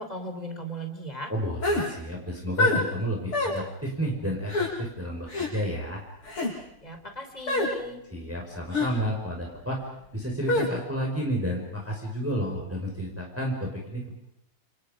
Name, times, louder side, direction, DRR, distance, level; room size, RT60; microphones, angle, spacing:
voice 1, 0.0-1.3 6.8-8.0, right 1 dB, 15° left, 5 dB, 4.1 m, -37 dB
voice 2, 1.3-6.0 8.1-9.9 10.1-14.1, equal, 5° right, -1 dB, 5.5 m, -31 dB
sound 1, 1.6-1.9 2.6-2.8 3.3-3.6 4.5-4.7 5.3-5.5 6.2-6.5 7.5-7.7 8.7-8.9 10.5-10.7, left 2 dB, 85° left, 7.7 m, -25 dB
29.0 x 29.0 x 5.3 m, 0.83 s
omnidirectional pair, 2.4 m